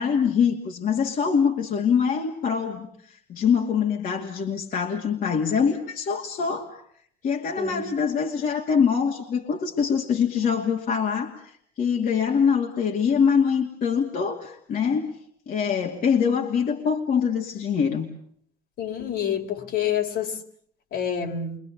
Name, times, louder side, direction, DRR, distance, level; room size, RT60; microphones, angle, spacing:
voice 1, 0.0-6.8 7.2-15.1 15.5-18.1, left 6 dB, 55° left, 1 dB, 2.6 m, -24 dB
voice 2, 7.6-7.9 18.8-20.4 20.9-21.6, left 8 dB, 70° left, 3 dB, 4.0 m, -28 dB
28.5 x 24.0 x 7.0 m, 0.65 s
cardioid pair, 110°, 17 cm